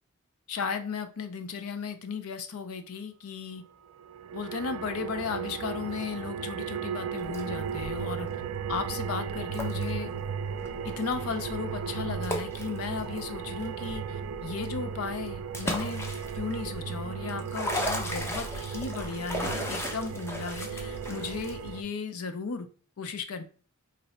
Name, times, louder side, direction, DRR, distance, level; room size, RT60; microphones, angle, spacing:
voice 1, 0.5-3.6 4.3-8.3 8.7-10.1 10.8-22.7 23.0-23.4, left 5 dB, 90° left, 0.5 m, -35 dB
sound 1, 4.0-21.8, right 6 dB, 75° right, 0.3 m, -36 dB
sound 2, 7.2-21.7, left 1 dB, 10° left, 0.6 m, -38 dB
3.1 x 2.6 x 4.1 m
head